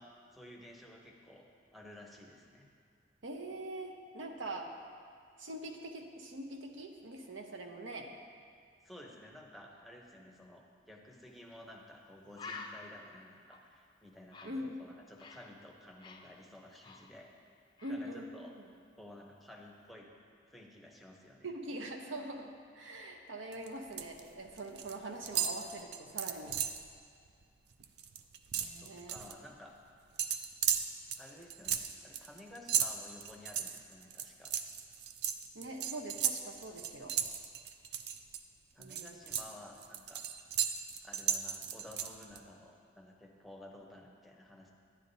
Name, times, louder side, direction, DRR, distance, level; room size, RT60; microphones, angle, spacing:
voice 1, 0.0-2.7 8.8-17.3 17.9-18.5 19.0-20.1 20.5-21.5 28.8-29.7 31.2-34.7 38.7-40.2 41.0-44.7, left 1 dB, ahead, -1 dB, 0.7 m, -53 dB
voice 2, 3.2-4.7 5.4-8.1 14.4-14.8 17.8-18.6 21.4-26.6 28.5-29.2 35.5-37.2 38.8-39.1, right 1 dB, 85° right, 3 dB, 0.8 m, -43 dB
Bird, 11.5-11.7 12.0-12.1 12.4-15.5 15.8-17.5 17.8-18.1, left 4 dB, 25° left, 0.4 m, -50 dB
sound 1, 23.5-24.2 24.5-25.0 25.3-26.8 27.3-27.4 27.7-29.3 30.2-38.4 38.8-42.4, right 8 dB, 60° right, 0.4 m, -35 dB
10.5 x 9.5 x 2.7 m, 2.2 s
head